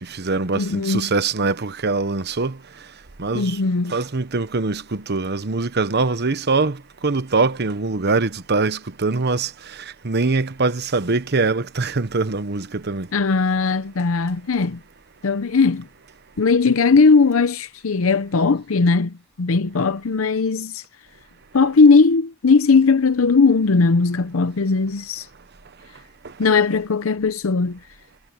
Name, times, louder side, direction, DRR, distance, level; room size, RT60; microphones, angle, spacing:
voice 1, 0.0-2.6 3.2-3.6 3.9-13.1 26.2-26.3, right 3 dB, 55° right, 1.0 m, -23 dB
voice 2, 0.5-1.1 3.3-4.0 13.1-14.8 15.2-15.9 16.4-20.8 21.5-25.3 26.4-27.8, left 4 dB, 75° left, 0.7 m, -18 dB
head